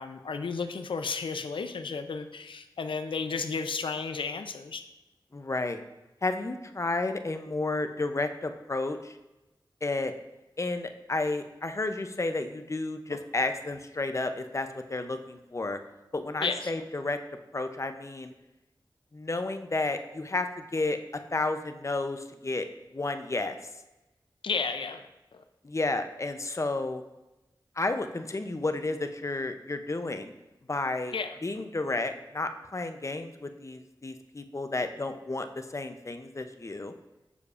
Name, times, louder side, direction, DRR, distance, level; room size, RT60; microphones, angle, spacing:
voice 1, 0.0-4.8 16.4-16.7 24.4-25.0 25.3-25.4 31.1-31.4, left 5 dB, 90° left, 8 dB, 0.4 m, -33 dB
voice 2, 5.3-5.8 6.2-9.1 9.8-10.1 10.6-15.8 16.1-17.2 17.5-18.3 19.1-21.0 21.3-22.7 22.9-23.6 25.6-27.0 27.8-30.3 30.7-31.1 31.4-36.9, left 2 dB, 35° left, 8 dB, 0.5 m, -31 dB
7.0 x 6.5 x 2.4 m, 0.99 s
wide cardioid pair, 60°, 8 cm